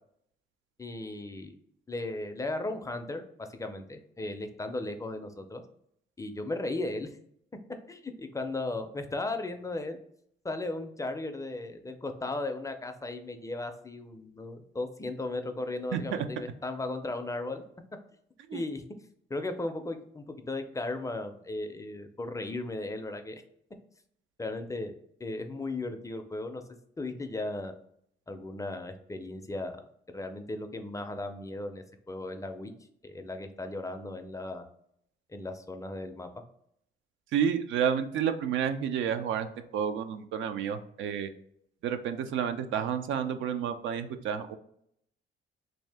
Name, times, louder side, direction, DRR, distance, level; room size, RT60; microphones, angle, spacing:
voice 1, 0.8-1.5 1.9-5.6 6.2-7.1 7.9-10.0 10.4-17.6 18.5-18.8 19.3-23.4 24.4-24.9 25.2-26.6 27.0-27.7 28.3-29.8 30.1-32.7 33.0-34.7 35.3-36.3, left 2 dB, 15° left, 7 dB, 0.4 m, -36 dB
voice 2, 37.3-39.5 39.7-41.3 41.8-44.6, right 8 dB, 75° right, 9 dB, 0.4 m, -30 dB
3.1 x 2.7 x 3.3 m, 0.70 s
cardioid pair, 90°, 20 cm